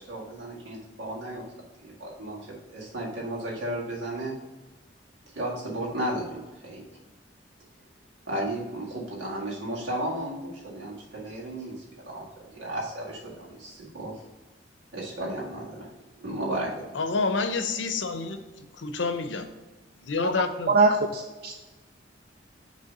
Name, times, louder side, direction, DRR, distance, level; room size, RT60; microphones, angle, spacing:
voice 1, 0.0-1.4 1.8-4.3 5.3-6.8 8.3-11.7 12.0-14.1 14.9-15.9 16.2-16.7, right 1 dB, 85° right, -5 dB, 1.9 m, -34 dB
voice 2, 16.9-19.5 20.0-20.8, left 4 dB, 80° left, 8 dB, 0.7 m, -28 dB
voice 3, 20.7-21.5, right 3 dB, 55° right, 4 dB, 0.4 m, -22 dB
6.5 x 3.3 x 5.4 m, 1.2 s
head